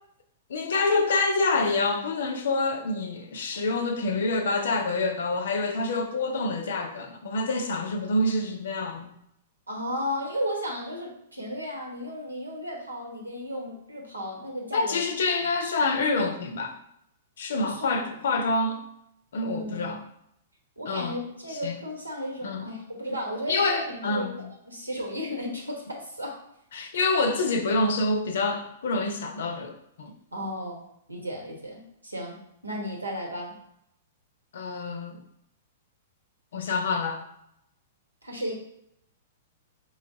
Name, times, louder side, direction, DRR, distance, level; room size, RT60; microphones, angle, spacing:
voice 1, 0.5-9.1 14.7-16.8 17.4-18.8 19.3-20.0 20.9-21.1 21.6-21.8 22.4-22.7 23.5-24.5 26.7-30.1 34.5-35.2 36.5-37.2, left 3 dB, 60° left, 6 dB, 0.6 m, -27 dB
voice 2, 9.7-15.0 15.3-15.4 17.6-18.1 19.4-20.0 20.8-24.3 24.6-26.4 30.3-30.8 31.1-32.4 32.6-33.5 38.2-38.5, equal, 90° right, 0 dB, 1.2 m, -34 dB
5.0 x 3.2 x 2.7 m, 0.75 s
figure-of-eight pair, 105°, 0 cm